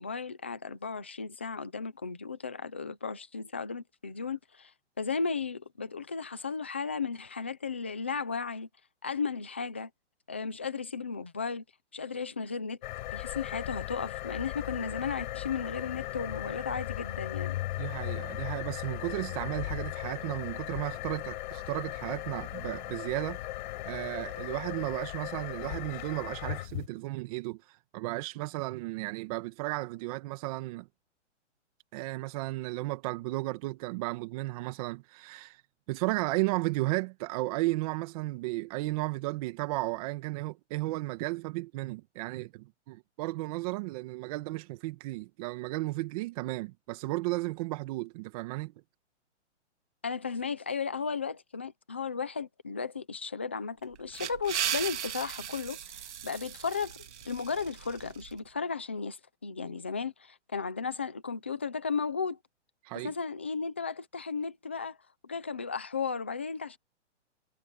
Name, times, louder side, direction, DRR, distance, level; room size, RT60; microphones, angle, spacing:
voice 1, 0.0-4.7 5.0-8.7 9.0-9.9 10.3-11.6 11.9-12.8 13.1-17.6 50.0-55.8 56.2-57.0 57.2-62.4 63.0-65.0 65.2-66.8, left 5 dB, 10° left, 0.3 m, -35 dB
sound 1, 12.8-26.9, left 16 dB, 40° left, 6.0 m, -37 dB
voice 2, 17.8-23.4 23.8-30.9 31.9-35.6 35.9-48.7 62.8-63.1, right 20 dB, 30° right, 1.7 m, -34 dB
sound 2, 53.8-58.4, right 9 dB, 70° right, 1.7 m, -37 dB
hypercardioid pair, 160°, 36 cm